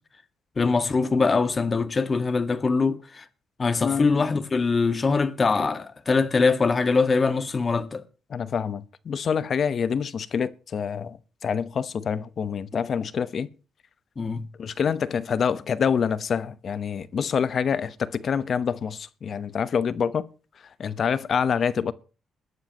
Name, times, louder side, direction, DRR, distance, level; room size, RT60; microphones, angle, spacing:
voice 1, 0.6-3.2 3.6-8.0 14.2-14.4, left 4 dB, 35° left, 1.5 m, -23 dB
voice 2, 3.8-4.4 8.3-11.2 11.4-13.5 14.6-20.2 20.8-21.9, left 7 dB, 50° left, 0.9 m, -26 dB
21.5 x 11.5 x 2.9 m
cardioid pair, 90°, 0 cm